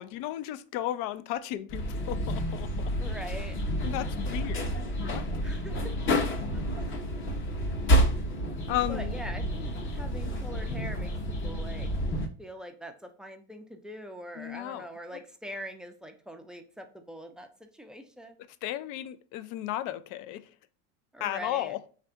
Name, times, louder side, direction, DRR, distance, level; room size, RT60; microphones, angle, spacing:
voice 1, 0.0-2.9 3.8-4.7 5.1-5.2 8.7-9.2 14.4-14.9 18.6-20.4 21.2-21.8, left 13 dB, 55° left, 0.5 m, -34 dB
sound 1, 1.7-12.3, equal, 30° left, 0.8 m, -29 dB
voice 2, 3.0-3.6 5.4-5.9 6.5-6.8 8.9-11.9 12.4-18.4 21.1-21.8, equal, ahead, 0.4 m, -43 dB
3.4 x 2.5 x 4.3 m
supercardioid pair, 110°, 38 cm